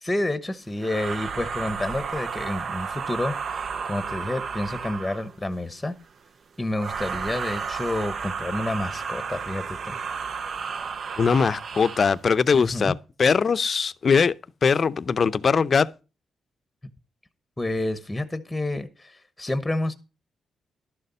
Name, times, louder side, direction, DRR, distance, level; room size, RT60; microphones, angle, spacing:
voice 1, 0.0-6.0 6.6-10.0 12.5-12.9 17.6-19.9, left 1 dB, 10° left, 1.0 m, -29 dB
sound 1, 0.8-5.4 6.7-12.2, right 6 dB, 55° right, 0.7 m, -32 dB
voice 2, 11.2-14.3 14.6-15.9, left 5 dB, 45° left, 0.6 m, -21 dB
12.0 x 6.7 x 5.5 m
cardioid pair, 105°, 0 cm